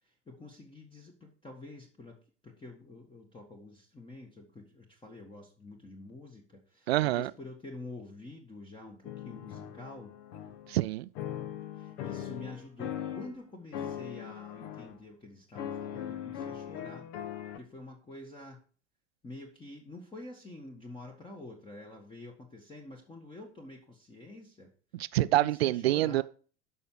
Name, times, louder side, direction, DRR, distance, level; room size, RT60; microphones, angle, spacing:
voice 1, 0.0-2.2 2.4-10.1 11.7-17.1 17.6-18.6 19.2-24.7 25.3-26.2, left 2 dB, 15° left, 1.6 m, -48 dB
voice 2, 6.9-7.3 10.7-11.1 24.9-26.2, right 15 dB, 60° right, 0.6 m, -26 dB
sound 1, 9.0-10.8 11.2-13.4 13.7-15.0 15.6-17.6, left 9 dB, 45° left, 1.3 m, -40 dB
12.5 x 5.6 x 4.7 m
figure-of-eight pair, 80°, 35 cm